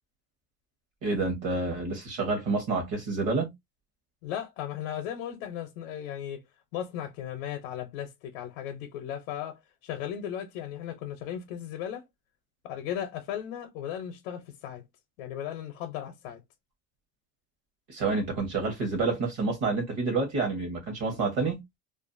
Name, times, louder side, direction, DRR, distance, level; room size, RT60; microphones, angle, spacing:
voice 1, 1.0-3.5 17.9-21.6, right 3 dB, 45° right, 0.9 m, -28 dB
voice 2, 4.2-6.4 6.7-12.0 12.6-14.8 15.2-16.4, left 10 dB, 75° left, 0.7 m, -36 dB
2.5 x 2.4 x 2.5 m
cardioid pair, 175°, 39 cm